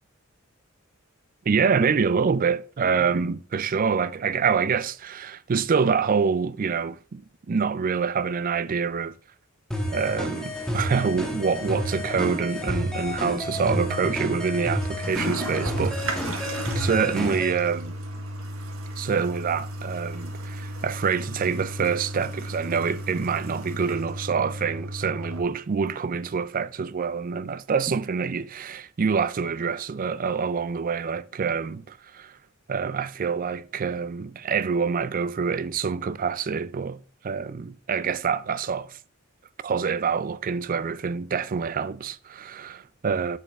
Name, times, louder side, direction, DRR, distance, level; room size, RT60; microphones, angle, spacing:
voice 1, 1.5-9.1 9.9-16.0 16.7-18.0 19.0-32.3 32.7-37.0 37.2-39.0 39.6-43.4, right 5 dB, 40° right, 0.4 m, -26 dB
sound 1, 9.7-17.5, left 1 dB, 5° left, 1.5 m, -30 dB
Toilet flush, 13.4-25.4, right 1 dB, 85° right, 1.4 m, -34 dB
8.3 x 7.0 x 3.6 m
head